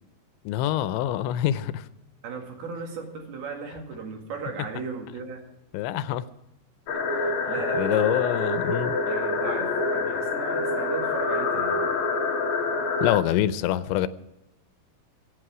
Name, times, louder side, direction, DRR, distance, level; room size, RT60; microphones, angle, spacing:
voice 1, 0.5-1.9 5.7-6.3 7.8-9.0 13.0-14.1, left 12 dB, 85° left, 14 dB, 3.0 m, -25 dB
voice 2, 2.2-5.4 7.5-8.3 8.6-8.7 9.0-11.9, right 4 dB, 60° right, 2 dB, 3.8 m, -36 dB
sound 1, 6.9-13.2, left 3 dB, 55° left, 2.4 m, -26 dB
24.5 x 8.6 x 4.9 m, 0.93 s
omnidirectional pair, 5.2 m